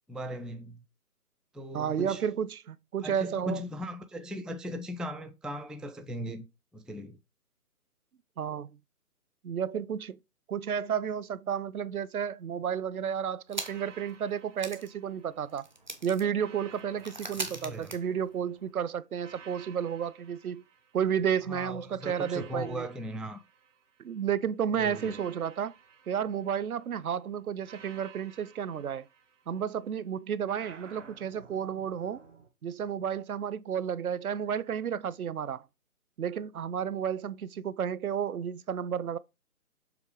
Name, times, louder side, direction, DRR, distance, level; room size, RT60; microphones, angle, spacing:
voice 1, 0.1-0.8 1.5-2.2 3.0-6.5 6.7-7.2 17.5-17.9 21.5-23.4 24.8-25.2, equal, ahead, 0.3 m, -38 dB
voice 2, 1.7-3.6 8.4-8.8 9.4-10.2 10.5-15.7 16.0-20.6 20.9-22.9 24.0-25.7 26.1-29.1 29.5-32.2 32.6-35.7 36.2-39.2, right 8 dB, 70° right, 0.6 m, -32 dB
Celery twisting, 13.5-14.0 14.3-14.4 14.6-18.7, right 2 dB, 30° right, 0.6 m, -41 dB
sound 1, 13.5-15.7 16.3-18.5 19.2-21.3 22.0-24.1 24.8-26.9 27.6-29.8 30.4-32.5, right 6 dB, 50° right, 1.3 m, -54 dB
7.0 x 3.1 x 4.8 m
hypercardioid pair, 170°, 45 cm